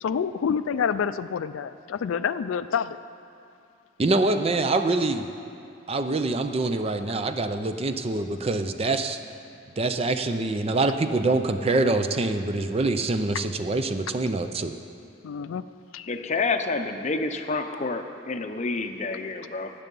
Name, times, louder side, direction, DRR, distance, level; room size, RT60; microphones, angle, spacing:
voice 1, 0.0-3.0 15.2-15.6 15.9-16.1, left 7 dB, 85° left, 13 dB, 0.4 m, -28 dB
voice 2, 4.0-5.3 5.9-9.2 9.8-14.7, right 2 dB, 30° right, 8 dB, 0.5 m, -25 dB
voice 3, 16.1-19.7, left 3 dB, 35° left, 7 dB, 0.6 m, -28 dB
18.0 x 6.8 x 5.4 m, 2.5 s
head